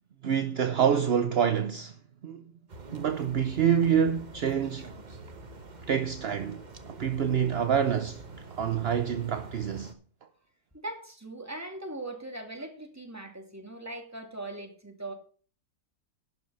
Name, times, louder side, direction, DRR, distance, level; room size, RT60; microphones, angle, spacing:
voice 1, 0.2-2.5 2.9-5.0 5.9-8.2 8.5-9.9, right 8 dB, 55° right, 0.7 m, -27 dB
sound 1, 2.7-9.9, right 2 dB, 30° right, 1.1 m, -46 dB
voice 2, 10.7-15.1, right 2 dB, 10° right, 2.3 m, -40 dB
12.0 x 6.0 x 6.9 m
omnidirectional pair, 1.8 m